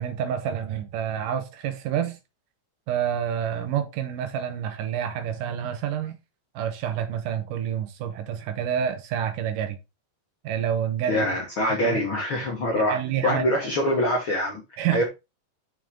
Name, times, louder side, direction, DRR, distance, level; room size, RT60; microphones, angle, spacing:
voice 1, 0.0-2.2 2.9-6.2 6.5-9.8 10.4-11.2 12.9-13.4 14.8-15.0, right 9 dB, 65° right, 2.3 m, -28 dB
voice 2, 11.1-14.6 14.9-15.0, left 1 dB, 60° left, 1.3 m, -24 dB
6.7 x 5.8 x 3.7 m
omnidirectional pair, 4.5 m